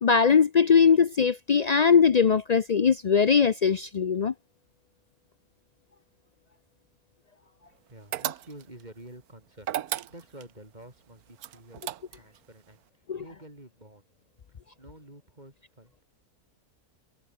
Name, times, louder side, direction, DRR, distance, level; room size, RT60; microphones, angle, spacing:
voice 1, 0.0-4.3 13.1-13.2, left 6 dB, 85° left, 0.3 m, -21 dB
voice 2, 7.9-9.7 10.1-11.8 12.1-12.8 13.2-14.0 14.8-16.0, right 1 dB, 25° right, 5.4 m, -49 dB
sound 1, 8.1-8.8 9.6-10.5 11.4-12.4, right 11 dB, 75° right, 1.3 m, -33 dB
omnidirectional pair, 1.6 m